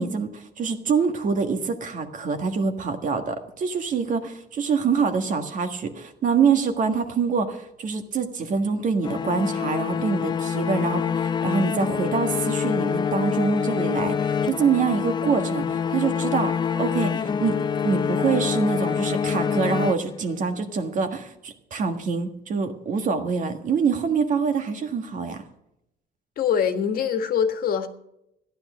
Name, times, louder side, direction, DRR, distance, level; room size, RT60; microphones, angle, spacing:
voice 1, 0.0-17.6 17.8-25.4, right 5 dB, 45° right, 7 dB, 1.6 m, -25 dB
sound 1, 9.0-20.5, left 7 dB, 25° left, 0.4 m, -26 dB
voice 2, 26.4-27.9, left 7 dB, 55° left, 7 dB, 1.6 m, -23 dB
14.5 x 10.5 x 6.2 m, 0.81 s
cardioid pair, 140°, 18 cm